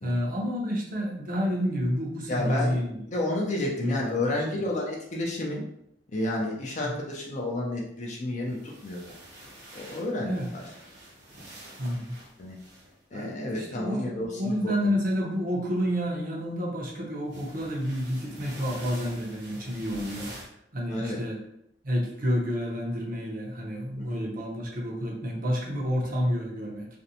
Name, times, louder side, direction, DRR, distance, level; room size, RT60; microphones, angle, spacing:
voice 1, 0.0-3.0 3.8-4.6 6.8-6.9 10.2-10.5 11.8-12.2 13.1-20.3 20.7-21.4 21.8-26.9, equal, 50° right, -1 dB, 0.7 m, -30 dB
voice 2, 2.3-2.8 3.1-5.6 6.1-9.0 9.7-10.6 12.4-12.6 13.1-15.0 20.9-21.2 24.0-24.2, left 1 dB, 45° left, -2 dB, 0.5 m, -31 dB
turning in bed, 8.3-13.4 15.1-15.4 17.3-20.5, right 1 dB, 85° right, 0.9 m, -46 dB
2.5 x 2.1 x 2.7 m, 0.75 s
head